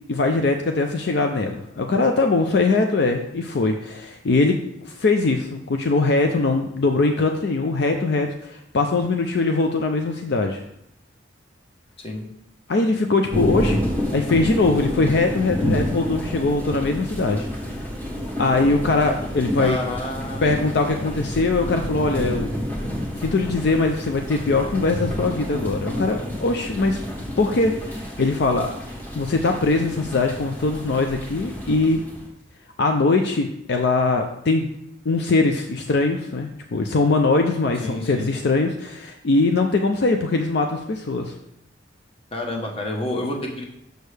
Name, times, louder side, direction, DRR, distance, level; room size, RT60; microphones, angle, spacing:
voice 1, 0.1-4.6 4.8-10.6 12.7-13.8 14.1-17.9 18.4-19.8 20.4-22.5 23.2-27.0 27.4-28.8 29.1-32.0 32.8-34.7 35.1-41.3, left 3 dB, 60° left, 4 dB, 0.5 m, -21 dB
sound 1, 13.3-32.3, equal, 10° left, 1.2 m, -29 dB
voice 2, 19.6-20.7 37.8-38.3 42.3-43.6, left 1 dB, 30° left, 1 dB, 1.0 m, -29 dB
6.5 x 6.4 x 3.3 m, 0.78 s
head